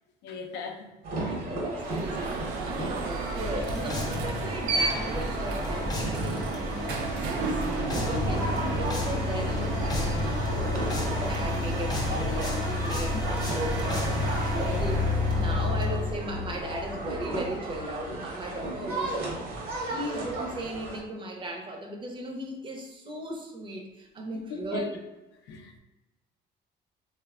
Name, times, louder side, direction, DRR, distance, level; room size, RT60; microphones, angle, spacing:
voice 1, 0.2-1.5 7.2-7.3 10.5-11.1 13.1-13.2 14.2-15.1 18.6-18.9 24.3-24.9 25.4-25.8, left 4 dB, 85° left, 3 dB, 0.4 m, -41 dB
sound 1, 1.0-21.0, right 2 dB, 60° right, 0.8 m, -36 dB
voice 2, 1.4-10.1 10.3-10.9 11.3-14.0 14.4-19.4 19.9-24.8, right 1 dB, 30° right, 1 dB, 0.5 m, -37 dB
Alarm, 1.7-15.7, right 3 dB, 80° right, 0.4 m, -34 dB
sound 2, 3.3-18.1, left 2 dB, 25° left, 0.5 m, -31 dB
3.1 x 2.1 x 2.3 m, 1.1 s
cardioid pair, 110°, 17 cm